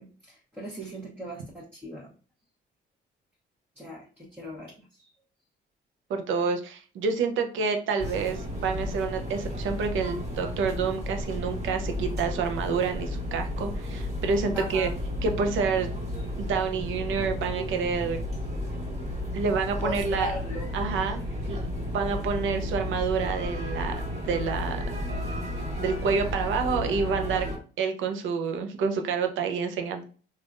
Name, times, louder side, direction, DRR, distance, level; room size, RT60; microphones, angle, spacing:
voice 1, 0.0-2.1 3.8-5.1 10.8-10.9 14.5-15.0 19.8-20.7 21.5-21.6, equal, 10° right, -6 dB, 1.0 m, -38 dB
voice 2, 6.1-14.9 15.2-15.9 16.4-18.2 19.3-20.3 20.7-21.2 21.5-24.8 25.8-27.5 27.8-30.0, right 5 dB, 80° right, 5 dB, 0.7 m, -28 dB
sound 1, 8.0-27.6, left 1 dB, 35° right, 1.5 m, -33 dB
3.5 x 2.5 x 2.5 m, 0.38 s
cardioid pair, 90°, 20 cm